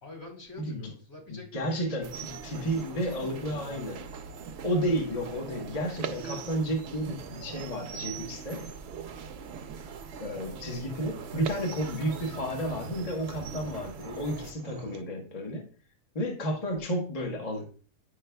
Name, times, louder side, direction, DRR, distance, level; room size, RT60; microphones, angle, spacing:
voice 1, 0.0-1.7 2.3-3.6, left 2 dB, 65° left, -3 dB, 3.4 m, -47 dB
voice 2, 1.3-4.0 4.6-8.7 10.2-15.7 16.1-17.7, equal, 25° left, 1 dB, 1.0 m, -32 dB
sound 1, 2.0-14.5, right 5 dB, 60° right, 0.7 m, -43 dB
sound 2, 2.1-15.0, right 7 dB, 90° right, 1.1 m, -44 dB
9.6 x 5.3 x 2.2 m, 0.39 s
omnidirectional pair, 1.6 m